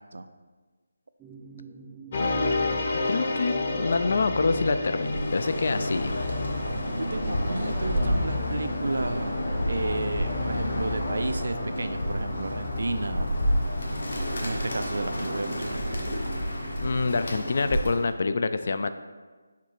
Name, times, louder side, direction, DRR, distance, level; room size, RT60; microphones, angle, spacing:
sound 1, 1.2-17.5, right 3 dB, 10° right, 0.6 m, -47 dB
sound 2, 2.1-14.2, left 3 dB, 35° left, 0.8 m, -32 dB
voice 1, 3.1-6.3 16.8-18.9, left 3 dB, 55° left, 10 dB, 0.3 m, -26 dB
Bird, 5.0-18.1, equal, 75° left, 1.4 m, -30 dB
voice 2, 7.0-9.4 9.7-13.3 14.4-15.8, right 2 dB, 70° right, 9 dB, 0.4 m, -32 dB
5.9 x 3.7 x 4.4 m, 1.4 s
figure-of-eight pair, 160°, 0 cm